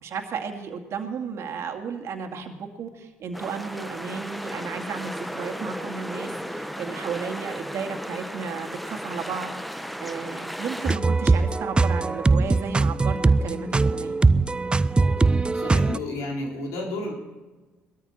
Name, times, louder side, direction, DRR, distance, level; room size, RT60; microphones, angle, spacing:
voice 1, 0.0-14.2, right 6 dB, 60° right, 4 dB, 2.3 m, -34 dB
sound 1, 3.3-11.0, equal, ahead, 1.0 m, -35 dB
sound 2, 10.9-16.0, right 3 dB, 20° right, 0.4 m, -21 dB
voice 2, 15.5-17.1, left 2 dB, 80° left, 0 dB, 4.2 m, -31 dB
20.0 x 13.5 x 4.4 m, 1.2 s
supercardioid pair, 65°, 5 cm